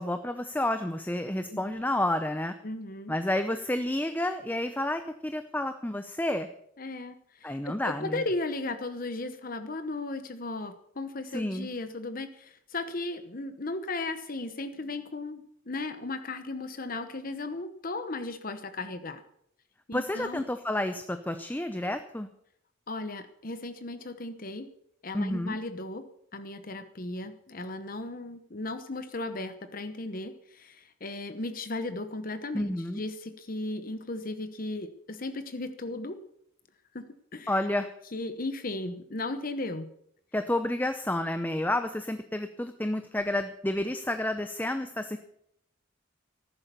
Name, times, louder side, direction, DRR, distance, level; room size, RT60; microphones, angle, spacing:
voice 1, 0.0-2.5 3.1-6.5 7.4-8.2 11.3-11.7 19.9-22.3 25.1-25.6 32.5-33.0 37.5-37.9 40.3-45.2, left 1 dB, 10° left, 8 dB, 0.7 m, -30 dB
voice 2, 1.5-1.8 2.6-3.2 6.8-19.2 19.9-20.4 22.9-24.7 25.0-26.0 26.3-36.2 36.9-37.1 37.3-37.6 38.1-39.9, left 2 dB, 45° left, 10 dB, 0.9 m, -36 dB
14.5 x 11.0 x 6.8 m, 0.73 s
head